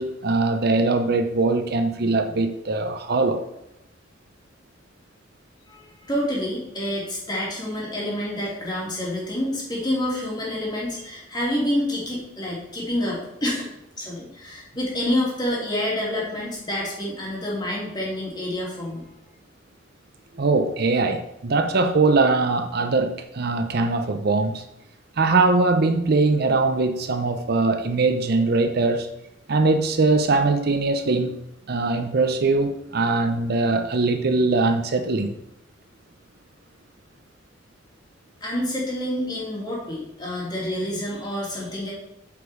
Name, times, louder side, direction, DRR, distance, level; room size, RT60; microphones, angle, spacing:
voice 1, 0.0-3.4 20.4-24.6 25.2-29.1 29.5-31.4 31.7-35.3, right 3 dB, 55° right, 7 dB, 0.6 m, -21 dB
voice 2, 5.7-13.7 14.0-19.0 38.4-41.9, left 1 dB, 20° left, -4 dB, 2.8 m, -28 dB
8.3 x 5.2 x 4.9 m, 0.85 s
head